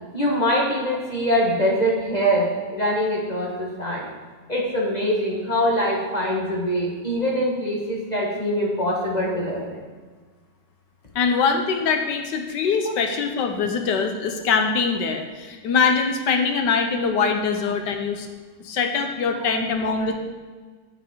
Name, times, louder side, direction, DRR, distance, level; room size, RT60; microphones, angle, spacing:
voice 1, 0.1-4.1 4.5-9.8 12.8-12.9 19.4-19.5, equal, 25° left, -3 dB, 1.3 m, -23 dB
voice 2, 11.1-18.3 18.6-20.2, left 5 dB, 75° left, 5 dB, 1.5 m, -23 dB
8.4 x 7.0 x 4.6 m, 1.4 s
omnidirectional pair, 1.9 m